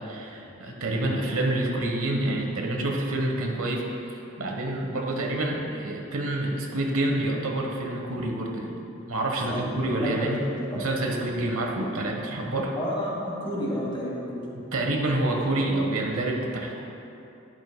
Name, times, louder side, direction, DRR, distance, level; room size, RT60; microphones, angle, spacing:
voice 1, 0.0-8.8 9.1-10.4 10.7-12.7 14.5-16.8, right 1 dB, 80° right, 1 dB, 1.1 m, -28 dB
voice 2, 9.4-10.9 12.8-14.4, equal, 25° left, -5 dB, 1.9 m, -32 dB
11.0 x 11.0 x 2.2 m, 2.8 s
head